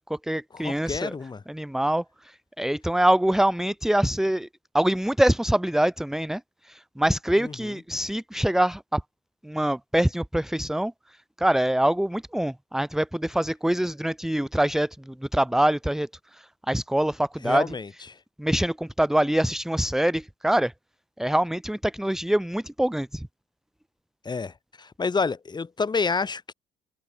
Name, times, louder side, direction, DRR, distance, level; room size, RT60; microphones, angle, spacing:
voice 1, 0.0-1.1 1.5-4.5 4.7-9.0 9.4-10.9 11.4-17.7 18.4-20.7 21.2-23.3, right 1 dB, ahead, 1.3 m, -24 dB
voice 2, 0.5-1.4 7.4-7.7 17.4-17.9 24.2-26.5, left 4 dB, 25° left, 6.9 m, -29 dB
cardioid pair, 110°, 17 cm